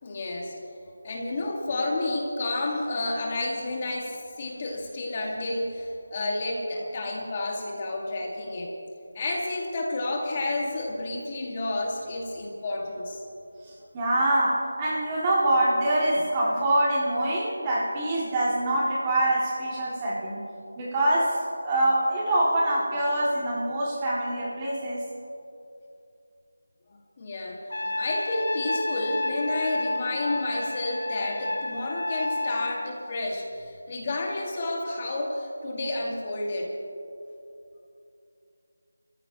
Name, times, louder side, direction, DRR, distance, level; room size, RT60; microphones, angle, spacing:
voice 1, 0.0-0.5 1.0-8.7 9.1-13.2 27.2-36.7, left 2 dB, 30° left, -1 dB, 1.7 m, -30 dB
voice 2, 13.9-20.4 20.8-25.1, right 1 dB, 20° right, -5 dB, 2.0 m, -25 dB
Trumpet, 27.7-32.8, left 2 dB, 70° left, 2.2 m, -31 dB
27.5 x 14.0 x 2.9 m, 2.6 s
figure-of-eight pair, 165°, 0 cm